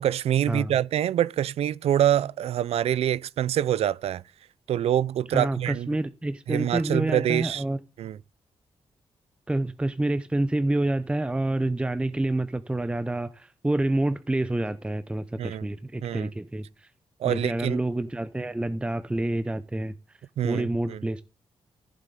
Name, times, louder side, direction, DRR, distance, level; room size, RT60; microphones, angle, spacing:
voice 1, 0.0-4.2 4.7-5.9 6.5-7.6 8.0-8.2 15.4-15.7 16.0-16.3 17.2-17.8 20.4-21.0, right 11 dB, 85° right, 0.4 m, -25 dB
voice 2, 5.3-7.8 9.5-16.9 17.3-19.9 20.4-21.2, right 1 dB, 10° right, 0.5 m, -28 dB
14.5 x 7.4 x 3.8 m
wide cardioid pair, 115°, 10 cm